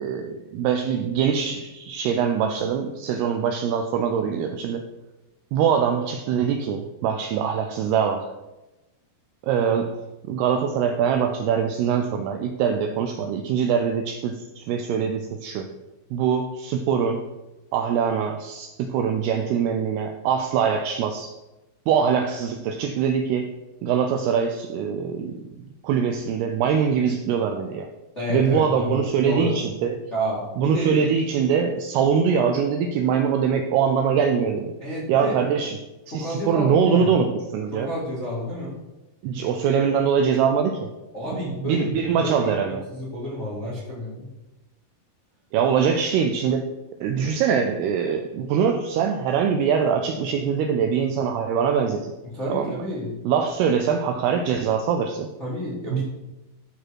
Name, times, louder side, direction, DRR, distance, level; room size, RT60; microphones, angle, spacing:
voice 1, 0.0-4.8 5.5-8.3 9.4-10.0 10.3-15.7 16.1-17.2 17.7-21.3 21.9-23.5 23.8-25.4 25.8-27.9 28.3-30.0 30.6-34.7 35.1-35.8 36.1-37.9 39.2-40.9 41.5-42.8 45.5-46.6 47.0-52.1 52.5-52.8 53.3-55.3 55.9-56.0, right 7 dB, 85° right, 5 dB, 2.3 m, -23 dB
voice 2, 28.1-29.6 30.1-31.0 34.8-35.4 36.1-37.2 37.7-38.7 41.1-44.3 52.2-53.2 55.4-56.0, equal, 30° left, -7 dB, 1.3 m, -30 dB
12.5 x 4.4 x 4.7 m, 1.0 s
omnidirectional pair, 5.2 m